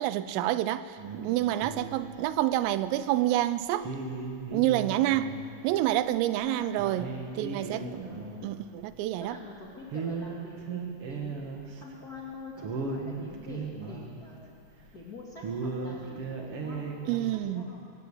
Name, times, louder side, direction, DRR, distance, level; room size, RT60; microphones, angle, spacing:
voice 1, 0.0-3.9 4.5-5.4 5.6-7.8 8.4-9.4 17.1-17.6, right 14 dB, 90° right, 14 dB, 3.4 m, -28 dB
sound 1, 1.0-2.5 3.0-3.1 3.7-5.6 5.8-5.9 6.4-6.5 6.7-9.6 9.9-12.0 12.2-12.3 12.6-15.0 15.4-17.3, right 4 dB, 70° right, 1.3 m, -37 dB
voice 2, 6.4-7.0 7.5-8.3 9.2-11.5 11.8-14.5 14.9-17.8, left 3 dB, 45° left, -4 dB, 1.2 m, -45 dB
25.0 x 16.5 x 8.5 m, 2.4 s
omnidirectional pair, 5.8 m